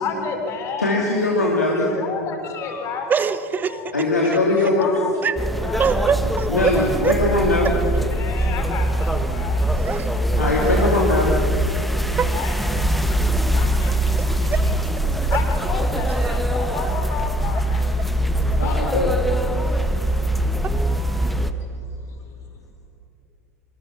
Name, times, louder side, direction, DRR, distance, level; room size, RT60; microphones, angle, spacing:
voice 1, 0.0-1.5 1.8-3.4 3.6-6.0 7.6-10.4 11.8-14.7 15.0-19.0 19.3-20.6 21.2-22.6, left 5 dB, 35° left, 4 dB, 4.1 m, -34 dB
voice 2, 0.8-1.9 3.9-4.9 6.5-7.7 10.3-11.4 18.6-19.1, left 2 dB, 80° left, -3 dB, 2.9 m, -20 dB
voice 3, 3.1-3.9 5.2-5.3 5.8-6.5 7.0-7.1 8.4-8.5 9.7-10.1 12.2-12.3 13.9-14.6 16.2-16.3 16.6-16.9 19.6-19.9 20.6-21.4, right 6 dB, 20° right, 14 dB, 1.1 m, -25 dB
sound 1, 5.4-21.5, right 1 dB, ahead, 1.3 m, -22 dB
25.5 x 25.0 x 6.1 m, 2.8 s
figure-of-eight pair, 80°, 8 cm